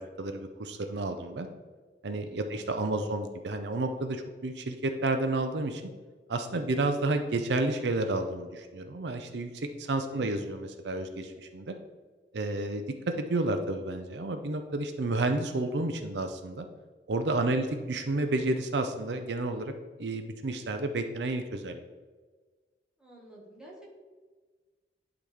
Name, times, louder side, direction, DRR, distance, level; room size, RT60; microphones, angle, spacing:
voice 1, 0.0-1.5 2.0-5.8 6.3-11.8 12.3-16.7 17.1-19.7 20.0-21.8, right 2 dB, 80° right, 7 dB, 0.6 m, -31 dB
voice 2, 2.5-3.0 10.1-10.4 17.4-17.8 23.0-23.9, right 2 dB, 5° right, -4 dB, 1.6 m, -50 dB
11.0 x 4.0 x 3.4 m, 1.4 s
head